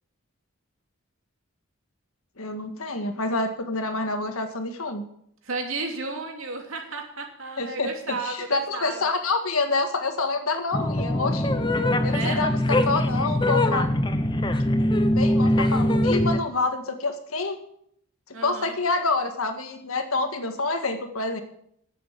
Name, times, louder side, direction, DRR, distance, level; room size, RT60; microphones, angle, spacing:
voice 1, 2.4-5.0 7.6-7.9 8.2-11.5 12.0-13.9 14.8-17.6 18.4-21.4, left 3 dB, 85° left, 6 dB, 1.8 m, -27 dB
voice 2, 5.4-9.0 12.0-12.4 18.3-18.8, right 3 dB, 75° right, 2 dB, 2.8 m, -33 dB
sound 1, 10.7-16.4, left 1 dB, 20° left, 0.8 m, -22 dB
10.5 x 8.3 x 8.3 m, 0.70 s
head